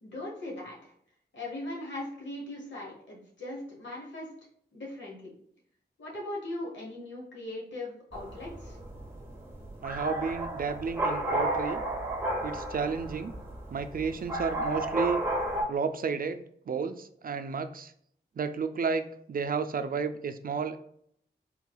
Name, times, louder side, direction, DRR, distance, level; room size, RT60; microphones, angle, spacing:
voice 1, 0.0-0.9 1.3-4.3 4.7-5.3 6.0-8.8, left 1 dB, 90° left, -4 dB, 1.1 m, -39 dB
sound 1, 8.1-15.6, right 1 dB, 15° right, 1.1 m, -33 dB
voice 2, 9.8-11.8 12.4-13.3 13.7-15.2 15.7-17.9 18.4-20.8, right 5 dB, 50° right, 9 dB, 0.4 m, -32 dB
3.7 x 2.9 x 2.3 m, 0.66 s
cardioid pair, 40°, 19 cm